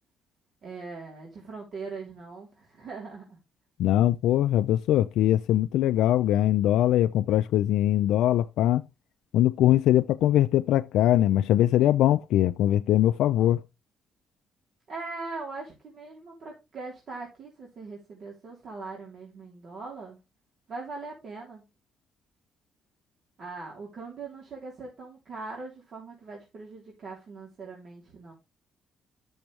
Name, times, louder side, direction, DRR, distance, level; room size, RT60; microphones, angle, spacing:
voice 1, 0.6-3.4 14.9-20.2 20.7-21.6 23.4-28.3, right 3 dB, 55° right, 3.4 m, -41 dB
voice 2, 3.8-8.8 9.3-13.6, left 12 dB, 85° left, 0.4 m, -22 dB
10.5 x 7.1 x 3.2 m
cardioid pair, 90°, 0 cm